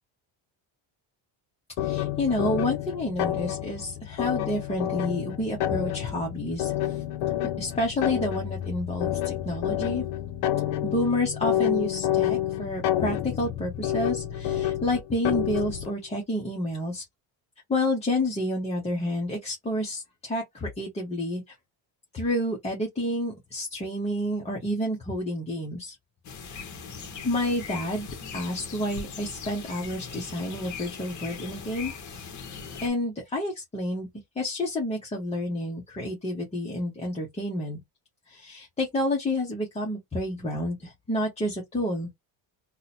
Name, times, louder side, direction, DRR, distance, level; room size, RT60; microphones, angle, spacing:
sound 1, 1.8-15.9, left 12 dB, 70° left, 0.7 m, -29 dB
voice 1, 1.8-7.0 7.6-10.0 10.8-17.0 17.7-21.5 22.1-26.0 27.2-28.1 28.3-32.3 32.8-34.1 34.4-37.8 38.3-42.1, left 1 dB, 15° left, 0.6 m, -29 dB
sound 2, 26.2-32.9, left 5 dB, 40° left, 0.9 m, -40 dB
2.7 x 2.1 x 4.0 m
cardioid pair, 165°, 48 cm